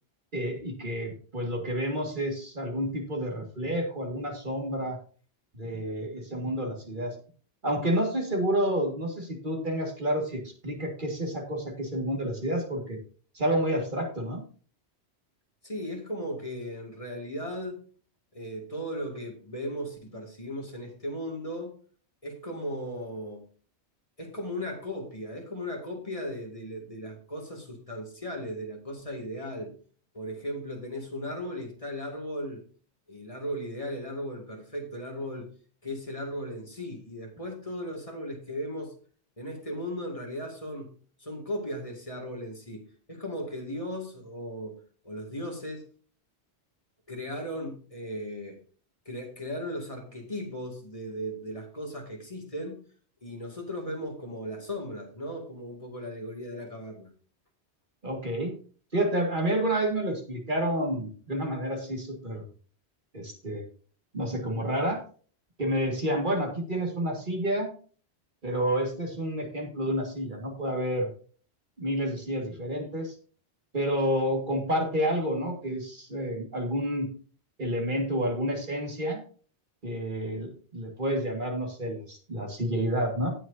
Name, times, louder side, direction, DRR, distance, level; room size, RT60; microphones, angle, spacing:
voice 1, 0.3-5.0 5.5-7.2 7.6-13.0 13.3-14.4 58.0-58.6 58.9-62.4 63.1-63.6 64.1-65.0 65.6-67.7 68.4-71.1 71.8-73.1 73.7-77.1 77.6-79.2 79.8-83.3, right 1 dB, 45° right, 2 dB, 2.1 m, -29 dB
voice 2, 15.6-17.8 18.3-21.7 22.2-23.4 24.2-29.7 30.1-32.6 33.1-35.5 35.8-39.0 39.4-44.8 45.0-45.9 47.1-48.6 49.1-52.8 53.2-57.1, equal, 30° left, 1 dB, 2.4 m, -37 dB
17.5 x 6.3 x 2.7 m, 0.41 s
omnidirectional pair, 1.1 m